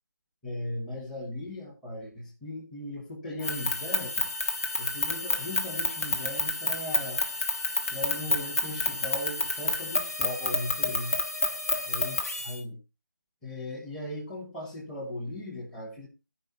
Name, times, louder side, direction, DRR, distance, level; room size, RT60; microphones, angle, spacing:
voice 1, 0.4-4.3 4.8-7.2 7.9-11.1 11.9-12.8 13.4-16.1, left 1 dB, 5° left, -6 dB, 1.6 m, -37 dB
sound 1, 3.4-12.6, left 3 dB, 50° left, 1.4 m, -29 dB
13.0 x 5.2 x 4.0 m, 0.29 s
figure-of-eight pair, 160°, 11 cm